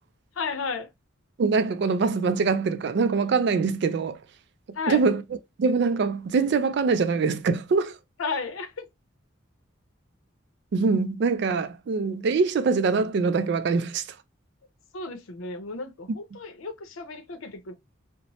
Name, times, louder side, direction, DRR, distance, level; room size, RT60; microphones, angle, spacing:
voice 1, 0.4-0.9 4.7-5.0 8.2-8.9 14.9-17.7, left 4 dB, 85° left, 0.6 m, -33 dB
voice 2, 1.4-4.2 4.9-5.2 5.6-8.0 10.7-14.1, right 4 dB, 55° right, 0.3 m, -23 dB
2.9 x 2.0 x 2.8 m
head